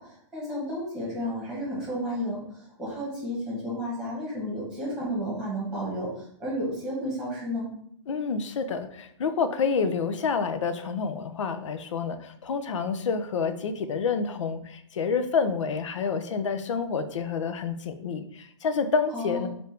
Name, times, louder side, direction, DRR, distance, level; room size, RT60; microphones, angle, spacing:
voice 1, 0.3-2.4 2.8-6.1 6.4-7.7 19.1-19.5, equal, 5° right, -5 dB, 1.5 m, -32 dB
voice 2, 8.1-19.5, left 5 dB, 80° left, 9 dB, 0.5 m, -28 dB
3.4 x 2.6 x 4.3 m, 0.67 s
hypercardioid pair, 165°, 16 cm